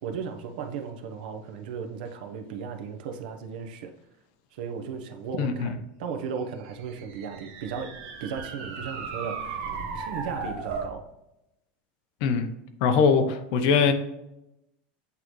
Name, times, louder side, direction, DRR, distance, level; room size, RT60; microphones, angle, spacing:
voice 1, 0.0-3.9 4.5-7.9 8.2-9.7 9.9-11.0, right 6 dB, 70° right, 5 dB, 0.9 m, -36 dB
voice 2, 5.4-5.8 12.2-12.5 12.8-13.9, left 6 dB, 55° left, 8 dB, 0.8 m, -22 dB
sound 1, 6.6-11.0, right 4 dB, 55° right, 1.4 m, -36 dB
8.3 x 3.9 x 3.1 m, 0.88 s
supercardioid pair, 160°, 5 cm